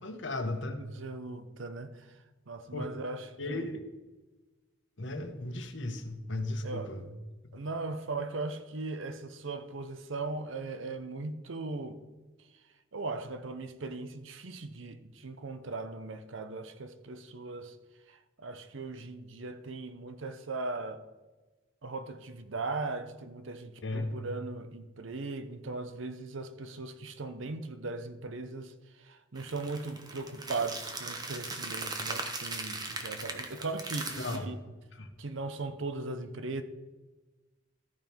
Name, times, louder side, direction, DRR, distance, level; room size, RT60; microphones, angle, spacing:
voice 1, 0.0-0.8 2.7-2.9 3.4-3.8 5.0-7.1 7.5-7.6 23.8-24.2 34.1-34.5 34.9-35.1, left 2 dB, 65° left, 1.1 m, -35 dB
voice 2, 0.8-2.1 2.5-3.7 6.6-6.9 7.5-12.0 12.9-17.8 18.1-21.0 21.8-34.6 35.2-36.6, right 3 dB, 75° right, 0.8 m, -38 dB
sound 1, 29.4-34.4, right 3 dB, 20° right, 1.0 m, -39 dB
14.0 x 5.3 x 4.5 m
head